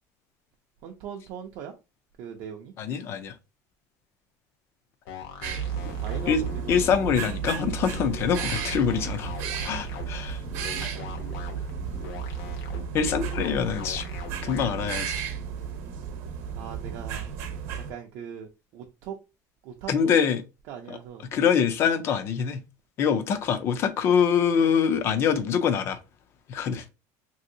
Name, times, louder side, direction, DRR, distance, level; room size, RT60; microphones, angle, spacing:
voice 1, 0.8-1.7 2.2-2.7 5.9-6.9 10.7-11.2 16.6-17.3 17.9-19.2 19.6-20.1 20.7-21.2, right 8 dB, 45° right, 0.4 m, -40 dB
voice 2, 2.8-3.3 6.3-6.4 6.7-9.3 9.6-10.4 10.8-10.9 12.9-14.0 14.4-15.2 19.9-20.4 20.9-21.0 21.3-22.6 23.0-26.0 26.5-26.8, left 7 dB, 30° left, 0.4 m, -24 dB
sound 1, 5.1-15.1, left 6 dB, 60° left, 0.8 m, -41 dB
sound 2, 5.4-17.9, right 8 dB, 65° right, 0.8 m, -33 dB
3.2 x 2.7 x 2.6 m
cardioid pair, 180°, 8 cm